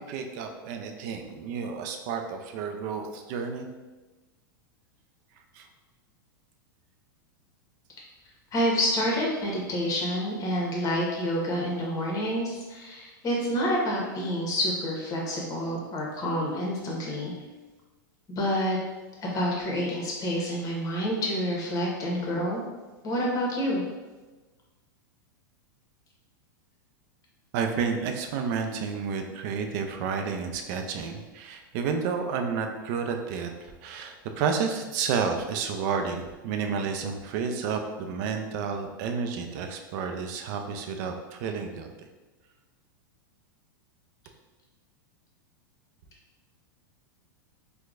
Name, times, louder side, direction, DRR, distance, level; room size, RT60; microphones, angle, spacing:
voice 1, 0.0-3.7 5.5-5.7 27.5-41.9, right 6 dB, 55° right, 5 dB, 0.5 m, -31 dB
voice 2, 8.5-17.3 18.3-18.8 19.2-22.6 23.0-23.8, equal, 30° left, -2 dB, 1.0 m, -28 dB
4.4 x 2.2 x 2.5 m, 1.2 s
hypercardioid pair, 110°, 11 cm